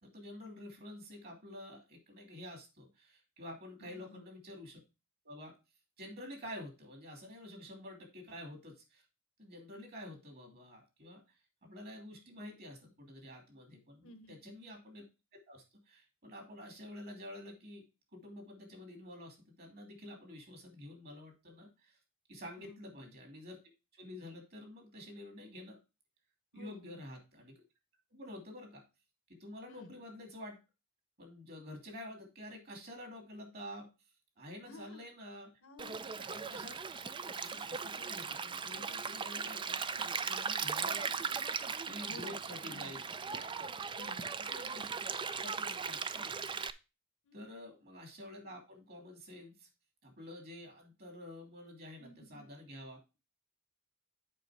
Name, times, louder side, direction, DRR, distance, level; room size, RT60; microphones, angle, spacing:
voice 1, 0.0-4.8 5.2-5.5 6.0-9.0 9.4-11.2 11.6-15.0 15.3-17.9 18.1-22.0 22.3-23.6 23.9-25.8 26.5-27.5 28.1-28.8 29.3-30.6 31.2-33.9 34.4-35.5 36.2-39.8 40.2-43.0 43.5-43.7 44.5-44.9 45.4-46.6 47.3-49.7 50.0-53.0, left 1 dB, 45° right, 3 dB, 2.8 m, -49 dB
voice 2, 3.8-4.2 14.0-14.5 22.6-22.8 26.5-27.0 29.7-29.9 34.6-35.1 35.6-36.1 39.9-40.1 42.0-42.9 44.0-44.3 44.7-44.9 47.2-47.5 52.0-52.5, left 2 dB, 65° left, 10 dB, 1.0 m, -54 dB
Stream, 35.8-46.7, right 5 dB, 20° right, 0.4 m, -38 dB
7.5 x 5.2 x 4.9 m, 0.28 s
head